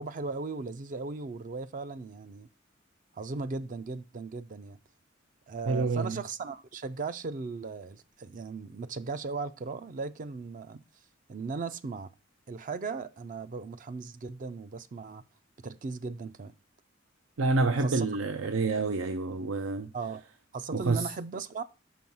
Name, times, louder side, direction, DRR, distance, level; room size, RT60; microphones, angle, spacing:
voice 1, 0.0-2.5 3.1-4.8 5.5-10.8 11.3-12.1 12.5-15.2 15.6-16.5 17.8-18.1 19.9-20.2 20.5-21.6, right 4 dB, 40° right, 0.4 m, -37 dB
voice 2, 5.7-6.2 17.4-19.9 20.7-21.1, right 3 dB, 90° right, 0.5 m, -28 dB
6.2 x 4.6 x 5.4 m
head